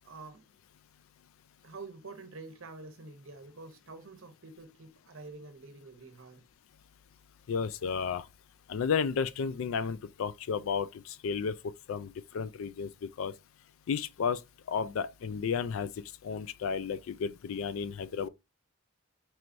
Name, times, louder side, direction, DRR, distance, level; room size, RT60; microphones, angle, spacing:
voice 1, 0.0-0.4 1.6-6.4, right 3 dB, 65° right, 0.8 m, -47 dB
voice 2, 7.5-8.2 8.7-11.5 11.9-12.9 13.2-13.3 13.9-14.4 14.7-15.9 16.2-18.3, left 6 dB, 65° left, 0.3 m, -32 dB
4.6 x 3.1 x 2.6 m
head